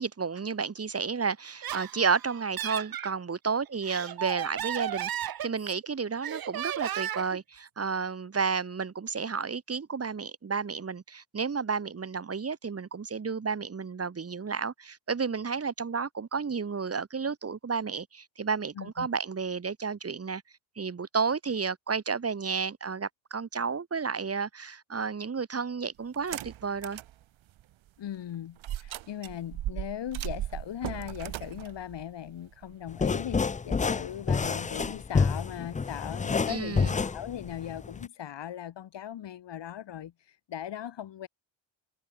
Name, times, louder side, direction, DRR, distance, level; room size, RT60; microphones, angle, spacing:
voice 1, 0.0-20.4 20.8-27.0 36.5-37.0, right 5 dB, 30° right, 1.9 m, -32 dB
Laughter, 1.4-3.1 3.7-5.9 6.2-7.4, right 11 dB, 50° right, 0.9 m, -35 dB
voice 2, 18.8-19.1 28.0-41.3, left 10 dB, 65° left, 1.9 m, -39 dB
sound 1, 26.1-27.1 27.6-27.7 28.6-32.9, right 13 dB, 75° right, 1.4 m, -37 dB
sound 2, 32.9-38.1, left 5 dB, 15° left, 0.5 m, -28 dB
cardioid pair, 120°, 47 cm